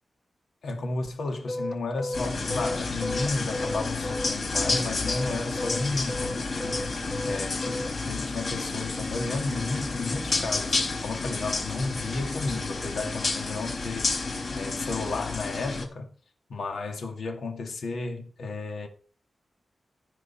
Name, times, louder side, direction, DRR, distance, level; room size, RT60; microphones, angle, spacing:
voice 1, 0.6-6.8 7.2-14.3 14.5-16.1 16.5-18.9, left 3 dB, 75° left, 2.1 m, -33 dB
sound 1, 1.5-4.8 5.1-7.9, left 1 dB, 15° left, 0.7 m, -33 dB
sound 2, 2.1-15.8, left 3 dB, 55° left, 4.8 m, -30 dB
15.0 x 5.1 x 5.7 m
wide cardioid pair, 165°, 0 cm